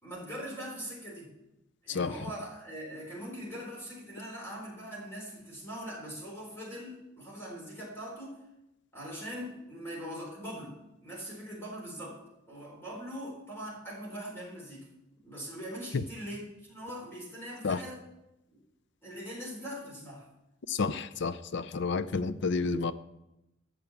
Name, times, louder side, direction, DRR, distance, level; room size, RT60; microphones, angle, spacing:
voice 1, 0.0-1.3 1.8-8.4 8.9-10.7 11.0-12.2 12.5-14.9 15.2-18.0 19.0-20.2, equal, 10° left, -4 dB, 4.0 m, -41 dB
voice 2, 20.7-22.9, left 4 dB, 60° left, 14 dB, 0.5 m, -30 dB
11.5 x 7.5 x 7.1 m, 0.91 s
head